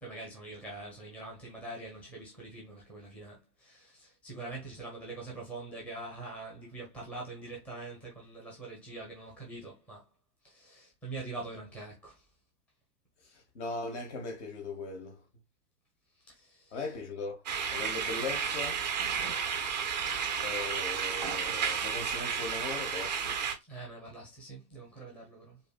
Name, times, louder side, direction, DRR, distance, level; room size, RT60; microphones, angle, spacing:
voice 1, 0.0-10.0 10.4-12.2 13.2-13.4 16.2-16.8 23.7-25.6, right 2 dB, 5° left, 0.7 m, -44 dB
voice 2, 13.3-15.2 16.7-17.4 17.7-18.8 20.4-23.4, left 3 dB, 45° left, 1.1 m, -39 dB
sound 1, 17.5-23.5, right 7 dB, 30° right, 0.4 m, -32 dB
4.6 x 2.6 x 2.2 m
figure-of-eight pair, 105°, 49 cm